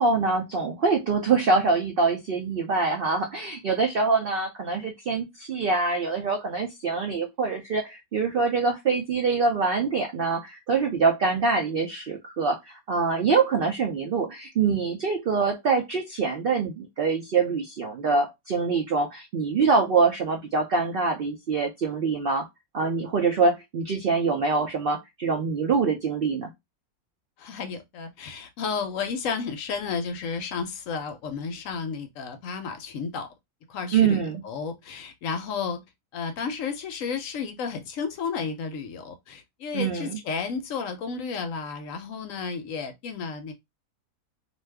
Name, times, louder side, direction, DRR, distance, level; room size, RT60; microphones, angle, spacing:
voice 1, 0.0-22.5 22.7-26.5 33.9-34.4 39.7-40.2, right 4 dB, 70° right, 0.5 m, -24 dB
voice 2, 27.4-33.3 33.7-35.8 36.1-43.5, left 5 dB, 70° left, 0.9 m, -32 dB
2.6 x 2.3 x 3.2 m
omnidirectional pair, 1.6 m